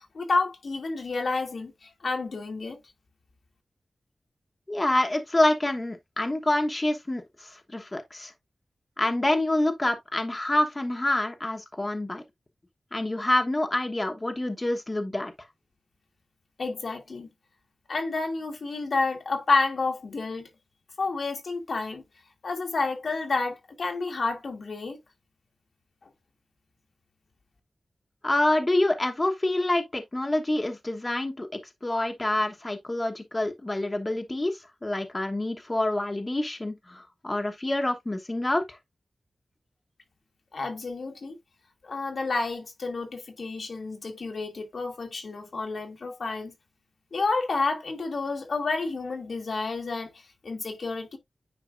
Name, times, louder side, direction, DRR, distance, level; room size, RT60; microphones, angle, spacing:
voice 1, 0.0-2.8 16.6-17.3 17.9-20.5 21.0-22.0 22.4-25.0 40.5-41.4 41.8-46.5 47.1-51.2, left 3 dB, 70° left, 1.5 m, -30 dB
voice 2, 4.7-8.3 9.0-12.2 12.9-15.3 28.2-38.8, left 1 dB, 25° left, 1.1 m, -27 dB
9.6 x 4.5 x 2.5 m
wide cardioid pair, 85°, 0 cm